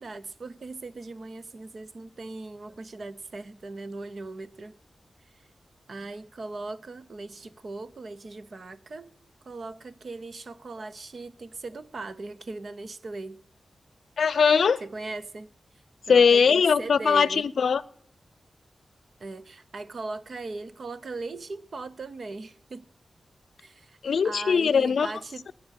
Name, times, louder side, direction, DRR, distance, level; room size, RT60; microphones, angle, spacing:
voice 1, 0.0-4.7 5.3-5.4 5.9-9.1 9.4-13.4 14.8-15.5 16.1-17.4 19.2-22.8 23.6-24.0 24.2-25.5, right 3 dB, 50° right, 0.8 m, -39 dB
voice 2, 14.2-14.8 16.1-17.8 24.0-25.1, left 6 dB, 80° left, 0.5 m, -20 dB
21.0 x 8.8 x 6.5 m
wide cardioid pair, 175°, 0 cm